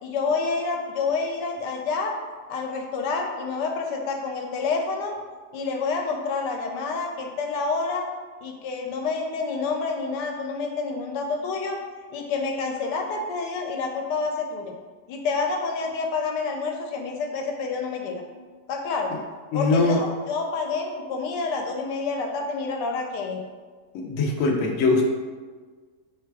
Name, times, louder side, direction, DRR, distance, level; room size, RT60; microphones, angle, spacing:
voice 1, 0.0-2.2 2.5-5.1 5.5-8.1 8.4-11.8 12.1-14.7 15.1-18.2 18.7-19.1 19.5-23.4, left 4 dB, 85° left, 2 dB, 1.2 m, -28 dB
voice 2, 19.5-20.0 23.9-25.1, left 3 dB, 65° left, 1 dB, 0.9 m, -21 dB
3.4 x 3.2 x 4.6 m, 1.4 s
omnidirectional pair, 1.8 m